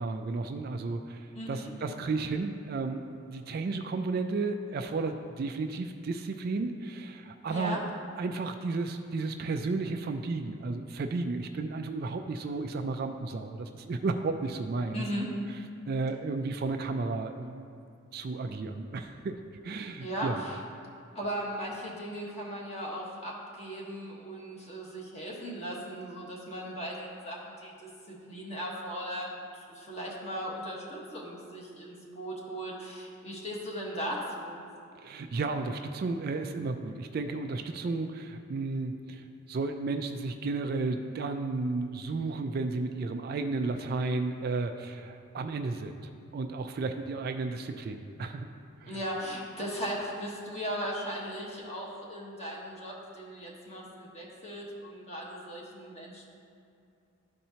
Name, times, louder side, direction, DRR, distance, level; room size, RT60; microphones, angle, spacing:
voice 1, 0.0-7.8 8.2-15.0 15.9-17.7 18.1-19.4 19.6-20.4 35.0-46.0 46.3-48.5 48.8-49.0, right 3 dB, 45° right, 6 dB, 0.3 m, -33 dB
voice 2, 7.5-7.8 14.9-15.3 20.0-20.6 21.1-27.7 28.1-34.5 48.8-56.3, equal, 30° left, -4 dB, 1.2 m, -37 dB
13.0 x 4.3 x 2.8 m, 2.5 s
head